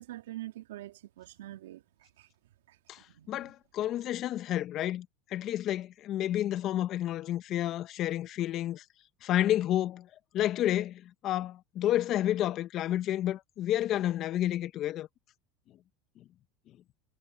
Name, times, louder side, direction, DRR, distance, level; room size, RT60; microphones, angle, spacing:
voice 1, 0.0-1.8 2.2-2.3 2.7-2.8 3.1-3.5, right 14 dB, 80° right, 2.9 m, -44 dB
voice 2, 2.9-8.8 9.2-10.1 10.3-15.1, left 12 dB, 45° left, 1.4 m, -30 dB
hypercardioid pair, 100°, 0 cm